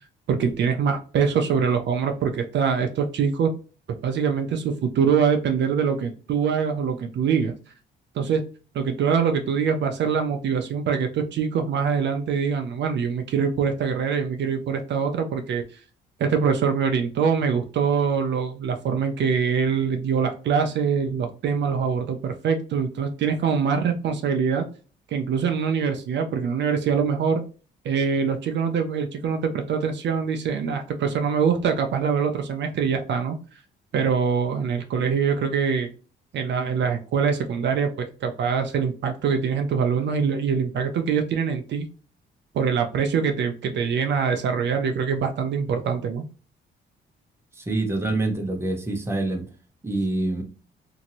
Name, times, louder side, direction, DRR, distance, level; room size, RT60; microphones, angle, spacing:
voice 1, 0.3-3.5 3.9-7.5 8.1-8.4 8.7-15.6 16.2-24.7 25.1-27.4 27.8-33.4 33.9-35.9 36.3-37.9 38.2-41.9 42.5-46.3, right 6 dB, 65° right, 5 dB, 0.5 m, -24 dB
voice 2, 47.5-49.4 49.8-50.4, right 2 dB, 15° right, 3 dB, 0.8 m, -26 dB
2.9 x 2.6 x 2.8 m, 0.37 s
cardioid pair, 90°, 20 cm